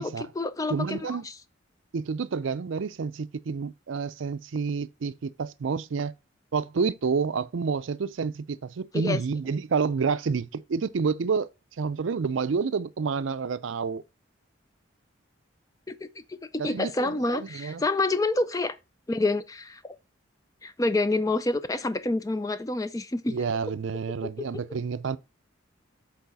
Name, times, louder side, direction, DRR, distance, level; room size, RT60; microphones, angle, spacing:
voice 1, 0.0-1.3 8.9-9.2 15.9-18.8 19.1-20.0 20.6-23.3 24.2-24.6, left 2 dB, 15° left, 0.4 m, -28 dB
voice 2, 0.7-1.3 1.9-6.1 6.5-11.5 11.8-14.0 16.6-17.8 23.3-25.2, right 5 dB, 70° right, 0.4 m, -29 dB
6.9 x 4.1 x 4.0 m
head